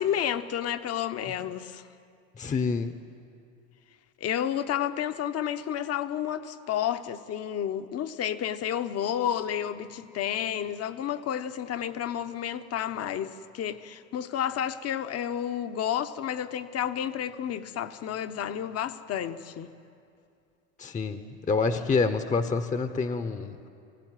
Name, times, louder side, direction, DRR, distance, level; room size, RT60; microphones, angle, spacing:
voice 1, 0.0-1.8 4.2-19.7, left 10 dB, 40° left, 1.0 m, -31 dB
voice 2, 2.4-2.9 20.8-21.2 21.5-23.7, left 4 dB, 20° left, 1.0 m, -27 dB
24.5 x 16.0 x 9.2 m
supercardioid pair, 100°, 38 cm